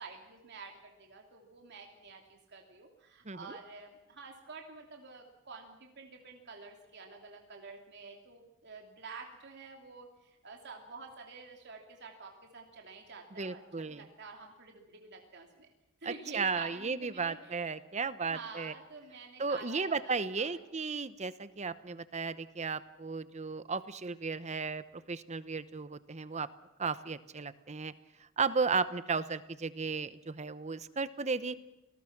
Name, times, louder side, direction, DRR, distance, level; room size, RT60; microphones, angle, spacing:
voice 1, 0.0-15.7 16.0-17.7 18.2-20.6, right 4 dB, 55° right, 2 dB, 3.0 m, -49 dB
voice 2, 3.2-3.6 13.4-14.1 16.0-18.7 19.4-26.5 26.8-27.9 28.4-31.6, right 4 dB, 35° right, 14 dB, 0.9 m, -35 dB
28.0 x 19.5 x 6.0 m, 0.95 s
head